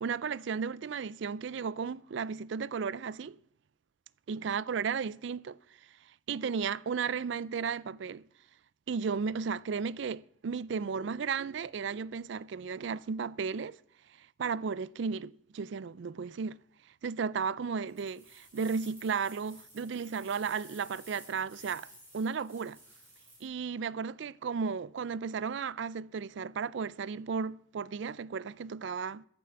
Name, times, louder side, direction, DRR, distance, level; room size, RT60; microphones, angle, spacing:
voice 1, 0.0-3.4 4.3-5.6 6.3-8.2 8.9-13.8 14.2-16.6 17.0-22.8 23.4-29.3, right 5 dB, 65° right, 0.4 m, -34 dB
sound 1, 17.9-23.4, right 1 dB, 10° right, 5.5 m, -54 dB
13.5 x 7.7 x 6.9 m
head